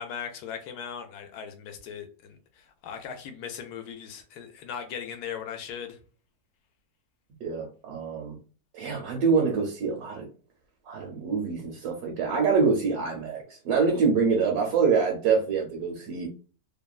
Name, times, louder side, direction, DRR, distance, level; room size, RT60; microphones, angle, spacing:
voice 1, 0.0-6.0, left 7 dB, 80° left, 1.1 m, -38 dB
voice 2, 7.4-8.4 8.7-10.2 10.8-16.3, right 5 dB, 70° right, 1.1 m, -25 dB
2.9 x 2.2 x 2.3 m
omnidirectional pair, 1.7 m